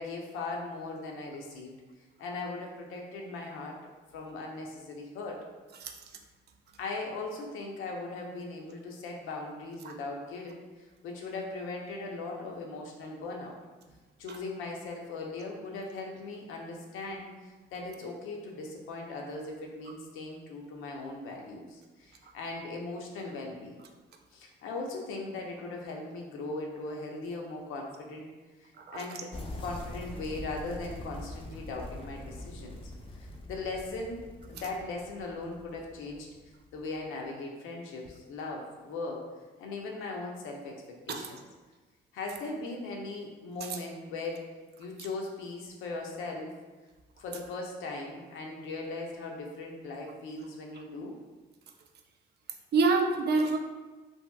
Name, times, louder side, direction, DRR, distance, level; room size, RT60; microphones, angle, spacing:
voice 1, 0.0-1.7 2.2-3.8 4.1-5.4 6.8-13.6 14.2-23.8 24.3-28.3 28.9-32.8 33.2-36.3 36.7-39.2 39.6-41.4 42.1-44.4 44.8-46.5 47.2-51.2, left 3 dB, 90° left, 0 dB, 0.5 m, -39 dB
sound 1, 29.3-37.0, left 1 dB, 25° left, 0.4 m, -44 dB
voice 2, 52.7-53.6, right 3 dB, 55° right, 4 dB, 0.4 m, -26 dB
2.7 x 2.7 x 2.2 m, 1.3 s
cardioid pair, 90°, 20 cm